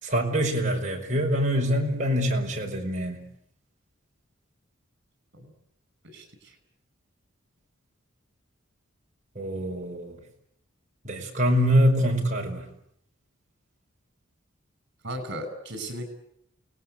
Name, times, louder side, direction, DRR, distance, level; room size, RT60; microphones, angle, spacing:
voice 1, 0.0-3.2 9.3-10.2 11.0-12.7, equal, 40° right, 1 dB, 5.1 m, -24 dB
voice 2, 6.0-6.5 15.0-16.1, right 1 dB, 60° right, 9 dB, 6.4 m, -36 dB
29.0 x 19.5 x 8.2 m, 0.72 s
head